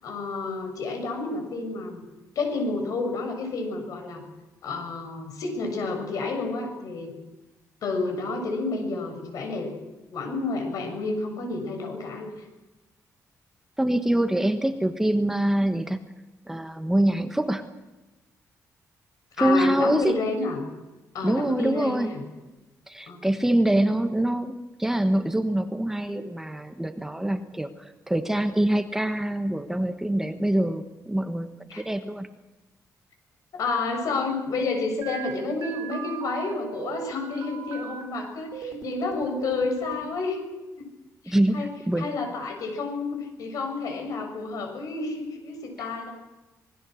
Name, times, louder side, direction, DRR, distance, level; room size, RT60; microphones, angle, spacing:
voice 1, 0.0-2.0 2.4-4.2 4.6-7.1 7.8-9.7 10.1-12.3 19.4-20.6 21.1-22.2 23.1-23.2 31.7-31.8 33.5-40.4 40.8-40.9 41.2-41.7 42.0-46.1, left 3 dB, 70° left, 4 dB, 7.0 m, -30 dB
voice 2, 13.8-16.0 16.5-17.6 19.4-20.1 21.2-22.1 22.9-24.5 24.8-31.5 31.8-32.3 41.3-42.1, right 1 dB, 5° right, 7 dB, 1.3 m, -24 dB
sound 1, 35.0-38.0 38.5-40.1, right 6 dB, 75° right, 4.9 m, -37 dB
26.5 x 20.5 x 6.4 m, 1.1 s
cardioid pair, 145°, 6 cm